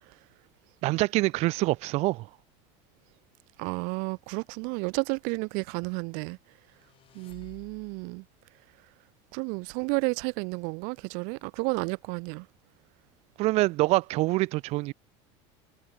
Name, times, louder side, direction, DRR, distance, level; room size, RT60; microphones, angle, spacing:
voice 1, 0.8-2.3 13.4-14.9, right 20 dB, 45° right, 0.4 m, -25 dB
voice 2, 3.6-6.4 7.1-8.2 9.3-12.5, right 35 dB, 65° right, 0.9 m, -31 dB
sound 1, 6.4-8.2, left 11 dB, 40° left, 6.3 m, -55 dB
supercardioid pair, 140°, 15 cm